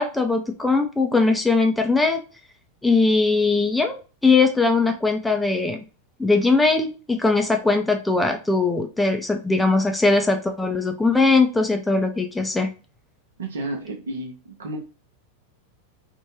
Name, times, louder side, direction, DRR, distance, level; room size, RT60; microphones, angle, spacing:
voice 1, 0.0-2.2 2.8-5.8 6.2-12.7, left 3 dB, 5° left, 4 dB, 0.4 m, -20 dB
voice 2, 13.4-14.8, right 2 dB, 65° right, 3 dB, 0.7 m, -31 dB
2.6 x 2.2 x 2.8 m, 0.33 s
figure-of-eight pair, 90°, 0 cm